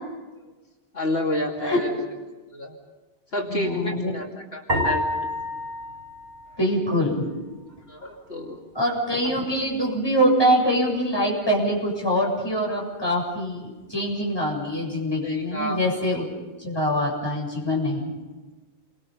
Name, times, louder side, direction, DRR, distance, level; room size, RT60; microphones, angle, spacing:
voice 1, 0.9-2.0 2.5-2.7 3.3-5.3 7.9-8.6 15.2-15.8, left 1 dB, 80° left, -1 dB, 3.1 m, -29 dB
voice 2, 3.5-4.1 6.6-7.2 8.7-16.3 16.6-18.1, equal, 25° left, -2 dB, 7.8 m, -24 dB
sound 1, 4.7-7.2, left 1 dB, 85° right, 7.2 m, -29 dB
30.0 x 24.5 x 5.5 m, 1.2 s
omnidirectional pair, 1.0 m